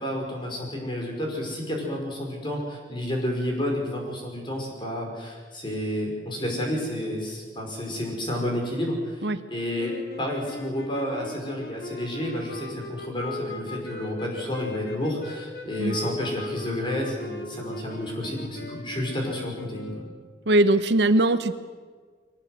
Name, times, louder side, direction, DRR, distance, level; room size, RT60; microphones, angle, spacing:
voice 1, 0.0-20.0, left 1 dB, 25° left, 1 dB, 5.6 m, -30 dB
sound 1, 9.8-20.3, left 2 dB, 60° left, 2.9 m, -39 dB
voice 2, 20.5-21.5, right 2 dB, 70° right, 11 dB, 1.0 m, -20 dB
22.5 x 19.0 x 8.1 m, 1.6 s
head